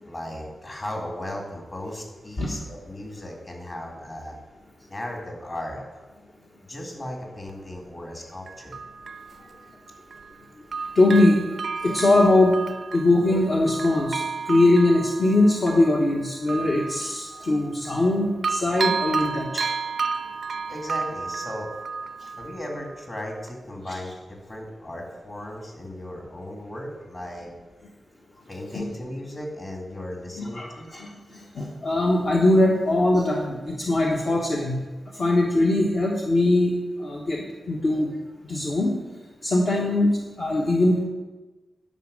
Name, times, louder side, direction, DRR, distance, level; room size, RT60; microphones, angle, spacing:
voice 1, 0.0-4.4 4.9-5.8 6.6-8.8 20.7-21.7 22.4-27.5 28.5-30.9, left 1 dB, 30° left, 0 dB, 2.3 m, -36 dB
Bell, 7.5-7.6 8.5-10.4 10.7-18.1 18.4-23.0 23.5-23.6, right 5 dB, 60° right, 0.4 m, -32 dB
voice 2, 10.9-11.4 11.8-12.6 12.9-19.6 23.9-24.0 28.7-28.8 30.4-31.1 31.5-34.8 35.1-36.7 37.0-38.2 38.4-38.9 39.4-41.0, left 2 dB, 55° left, -2 dB, 1.2 m, -21 dB
10.5 x 5.4 x 6.4 m, 1.2 s
wide cardioid pair, 105°, 0 cm